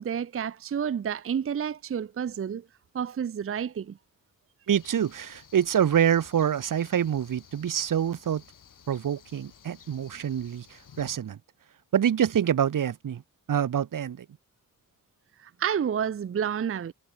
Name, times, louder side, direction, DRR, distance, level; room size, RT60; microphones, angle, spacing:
voice 1, 0.0-2.6 2.9-4.0 15.4-16.9, right 8 dB, 40° right, 0.6 m, -30 dB
sound 1, 4.7-11.2, left 7 dB, 70° left, 3.0 m, -54 dB
voice 2, 4.7-8.4 8.9-11.4 11.9-13.2 13.5-14.2, right 9 dB, 70° right, 1.2 m, -26 dB
wide cardioid pair, 160°, 33 cm